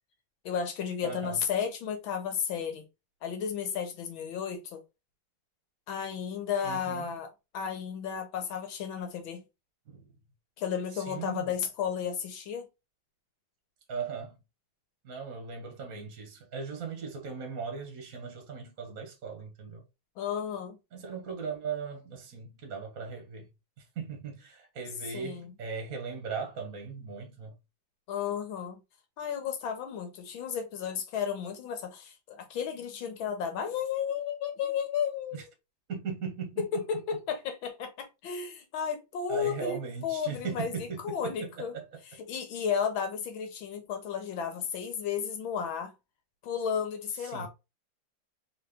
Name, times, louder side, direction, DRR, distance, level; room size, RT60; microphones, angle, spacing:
voice 1, 0.4-2.8 3.2-4.8 5.9-9.4 10.6-12.7 20.2-20.8 25.1-25.5 28.1-28.8 29.2-35.4 36.6-41.7 42.2-45.9 46.4-47.5, left 7 dB, 70° left, 1.5 m, -33 dB
voice 2, 1.0-1.4 6.6-7.1 9.9-10.1 10.9-11.5 13.9-14.4 15.0-19.8 20.9-23.5 23.8-27.5 35.3-35.4 35.9-36.8 39.3-42.0 47.1-47.5, right 5 dB, 50° right, 1.2 m, -38 dB
4.1 x 3.0 x 3.5 m
omnidirectional pair, 2.4 m